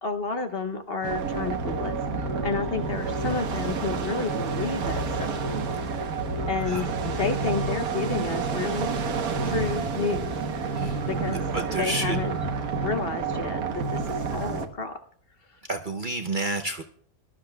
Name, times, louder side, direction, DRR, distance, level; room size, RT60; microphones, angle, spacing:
voice 1, 0.0-5.4 6.5-8.9 9.4-10.3 11.1-11.4 11.8-12.4 12.8-14.0 14.3-14.9, left 5 dB, 50° left, 7 dB, 0.8 m, -31 dB
sound 1, 1.0-14.7, right 4 dB, 75° right, 1.5 m, -29 dB
sound 2, 2.5-12.9, left 1 dB, 65° left, 7.2 m, -50 dB
voice 2, 11.3-12.2 15.7-16.8, right 2 dB, 45° right, 6 dB, 0.7 m, -30 dB
23.0 x 12.0 x 2.2 m, 0.62 s
omnidirectional pair, 1.6 m